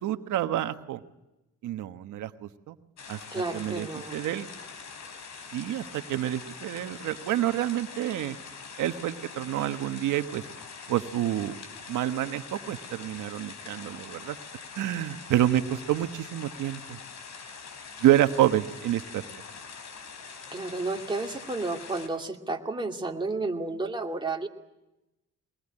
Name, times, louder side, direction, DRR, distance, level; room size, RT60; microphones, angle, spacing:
voice 1, 0.0-1.0 1.6-2.8 3.1-3.2 3.5-4.5 5.5-8.4 8.8-10.4 10.9-11.6 11.9-14.4 14.7-17.0 18.0-19.2, right 13 dB, 80° right, 9 dB, 1.3 m, -28 dB
sound 1, 3.0-22.1, left 5 dB, 65° left, 4.1 m, -44 dB
voice 2, 3.3-4.2 20.5-24.5, right 3 dB, 15° right, 1 dB, 2.5 m, -32 dB
22.0 x 20.5 x 10.0 m, 0.98 s
cardioid pair, 90°, 30 cm